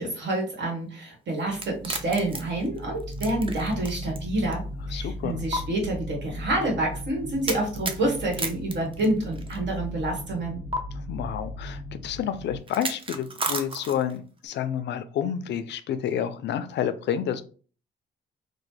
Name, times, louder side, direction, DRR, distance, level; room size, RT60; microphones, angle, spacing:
voice 1, 0.0-10.6, right 1 dB, 65° right, 1.5 m, -28 dB
sound 1, 1.5-12.6, left 1 dB, 10° right, 1.3 m, -37 dB
sound 2, 1.5-4.2 4.5-4.6 5.5-5.6 7.5-9.6 10.7-10.8 12.7-14.2, right 2 dB, 25° right, 0.5 m, -32 dB
voice 2, 4.9-5.4 10.9-17.4, left 9 dB, 60° left, 0.4 m, -29 dB
3.0 x 2.1 x 3.2 m
cardioid pair, 90°, 20 cm